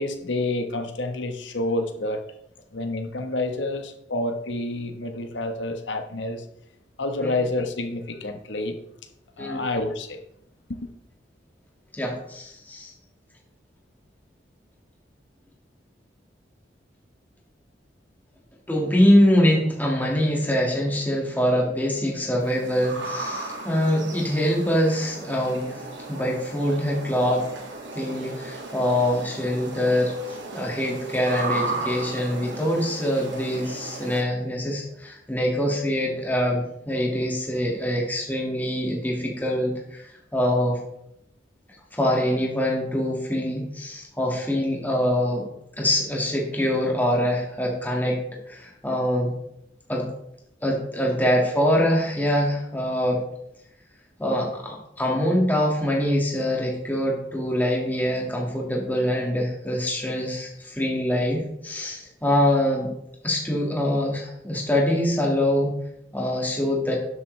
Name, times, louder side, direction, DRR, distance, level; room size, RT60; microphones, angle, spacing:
voice 1, 0.0-2.2 2.7-6.4 7.0-8.8 9.4-10.2 10.8-10.9, left 2 dB, 85° left, 6 dB, 1.3 m, -28 dB
voice 2, 11.9-12.9 18.7-25.7 26.1-27.4 27.9-30.1 30.5-40.8 41.9-45.5 45.8-48.2 48.5-49.3 49.9-50.1 50.6-53.2 54.2-62.9 63.2-65.7 66.1-66.9, equal, 10° left, -2 dB, 1.9 m, -24 dB
sound 1, 22.4-34.2, right 2 dB, 90° right, 2.0 m, -35 dB
12.0 x 8.0 x 3.3 m, 0.78 s
head